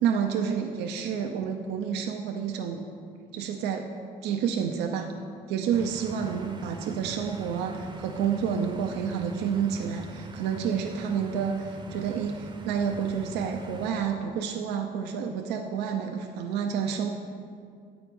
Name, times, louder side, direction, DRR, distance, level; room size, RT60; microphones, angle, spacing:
voice 1, 0.0-2.8 3.3-3.9 4.2-5.1 5.5-17.1, right 7 dB, 85° right, 3 dB, 0.5 m, -29 dB
sound 1, 5.7-13.9, right 2 dB, 25° right, 0.7 m, -43 dB
8.7 x 4.9 x 5.2 m, 2.3 s
cardioid pair, 110°, 17 cm